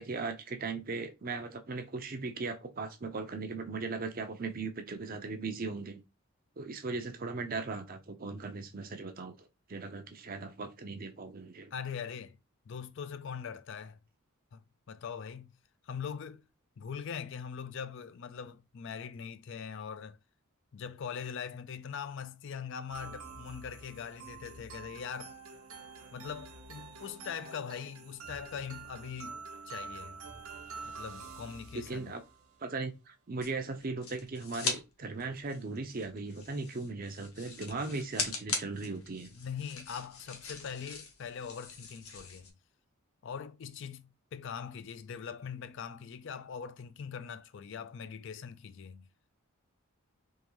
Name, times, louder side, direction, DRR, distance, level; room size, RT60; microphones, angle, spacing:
voice 1, 0.0-6.0 6.6-9.3 9.7-11.7 31.7-32.2 32.6-39.3, right 3 dB, 40° right, 0.6 m, -38 dB
voice 2, 11.7-12.4 12.7-14.0 14.5-15.5 15.8-16.4 16.8-20.2 20.7-25.4 26.1-29.4 29.7-30.2 30.8-32.1 39.3-42.5 43.2-49.1, left 7 dB, 55° left, 0.4 m, -42 dB
sound 1, 22.9-32.6, right 4 dB, 75° right, 1.0 m, -47 dB
sound 2, 33.4-34.8 35.1-42.5, left 4 dB, 85° left, 1.1 m, -40 dB
3.7 x 3.1 x 3.0 m
head